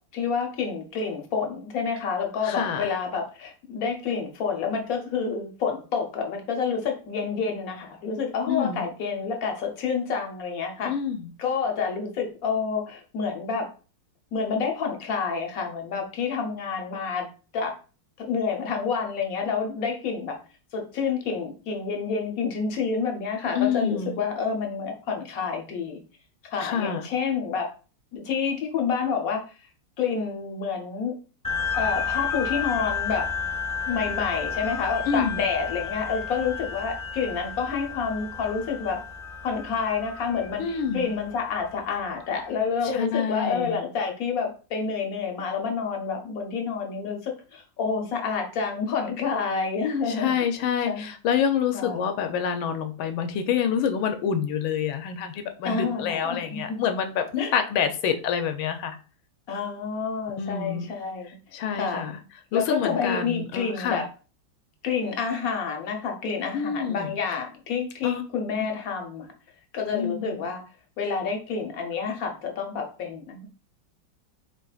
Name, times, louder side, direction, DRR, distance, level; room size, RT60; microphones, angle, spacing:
voice 1, 0.1-10.9 11.4-13.7 14.3-17.3 17.5-17.7 18.2-20.4 20.7-26.0 26.5-27.7 28.1-29.4 30.0-31.2 31.7-33.2 33.9-39.0 39.4-50.3 50.9-51.1 51.7-52.0 55.6-56.8 57.4-57.5 59.5-61.4 61.7-62.0 62.5-64.0 64.8-69.3 69.7-70.6 71.0-73.5, left 5 dB, 60° left, 3 dB, 1.0 m, -28 dB
voice 2, 2.4-2.9 8.5-8.8 10.8-11.3 23.5-24.1 26.6-27.1 35.1-35.4 40.6-41.1 42.9-43.8 50.1-59.0 60.4-60.9 61.5-62.1 62.5-64.0 66.5-67.1 68.0-68.2 68.6-68.7 69.9-70.5, left 7 dB, 85° left, 7 dB, 1.4 m, -27 dB
sound 1, 31.4-42.3, left 6 dB, 5° left, 1.0 m, -32 dB
3.9 x 3.8 x 2.4 m, 0.36 s
omnidirectional pair, 2.1 m